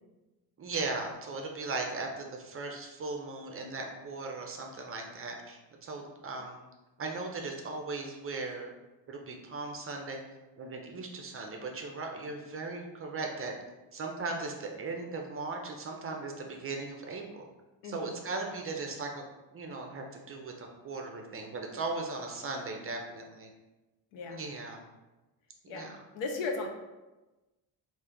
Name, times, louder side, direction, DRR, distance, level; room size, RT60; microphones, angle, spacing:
voice 1, 0.6-6.6 7.0-8.7 9.1-10.2 10.6-13.5 13.9-17.5 17.8-19.2 19.5-23.5 24.3-24.8 25.7-26.0, right 3 dB, 30° right, 2 dB, 0.5 m, -38 dB
voice 2, 17.8-18.2 24.1-24.4 25.7-26.7, left 3 dB, 80° left, 3 dB, 0.8 m, -36 dB
3.2 x 2.6 x 3.7 m, 1.1 s
cardioid pair, 105°, 44 cm